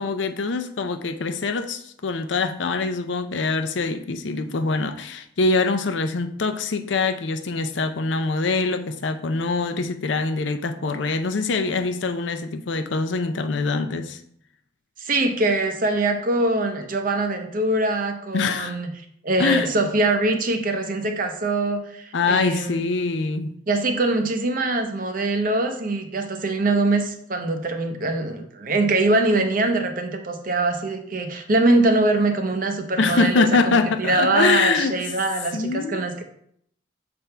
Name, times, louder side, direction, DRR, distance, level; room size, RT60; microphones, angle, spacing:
voice 1, 0.0-14.2 18.3-18.8 19.4-19.7 22.1-23.5 33.0-35.0 35.5-36.1, left 3 dB, 70° left, 8 dB, 0.5 m, -24 dB
voice 2, 15.0-18.9 19.2-22.8 23.7-36.2, right 2 dB, 45° right, 6 dB, 0.7 m, -23 dB
6.8 x 3.5 x 4.4 m, 0.68 s
head